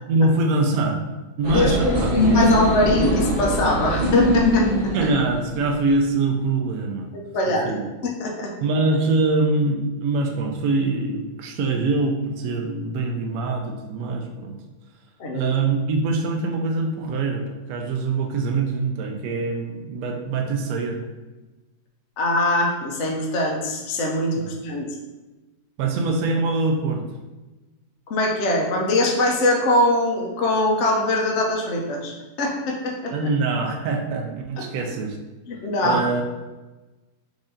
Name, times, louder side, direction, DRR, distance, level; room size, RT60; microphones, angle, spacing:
voice 1, 0.1-1.0 1.4-2.3 4.9-7.1 7.5-7.9 8.6-14.6 15.3-21.0 24.3-24.5 25.8-27.0 33.1-35.2 35.8-36.2, right 3 dB, 70° right, 3 dB, 1.0 m, -24 dB
sound 1, 1.4-5.9, left 1 dB, 40° right, 0.9 m, -21 dB
voice 2, 1.5-4.9 7.1-7.7 8.0-8.5 15.2-15.5 22.2-24.9 28.1-33.1 35.5-36.0, left 1 dB, 55° left, 0 dB, 0.8 m, -22 dB
4.9 x 2.6 x 3.7 m, 1.1 s
omnidirectional pair, 1.8 m